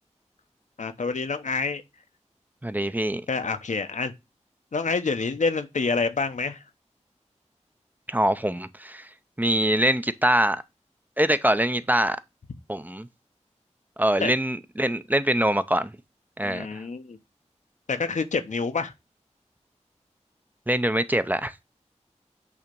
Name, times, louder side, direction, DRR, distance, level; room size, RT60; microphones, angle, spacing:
voice 1, 0.8-1.8 3.3-4.1 4.7-6.6 14.2-14.3 16.4-17.2 17.9-18.9, left 4 dB, 85° left, 0.8 m, -27 dB
voice 2, 2.6-3.2 8.1-9.1 9.4-10.6 11.2-12.2 12.7-13.1 14.0-15.9 16.4-16.8 20.7-21.6, right 1 dB, 15° right, 0.5 m, -24 dB
8.4 x 2.9 x 5.2 m
wide cardioid pair, 60°, 12 cm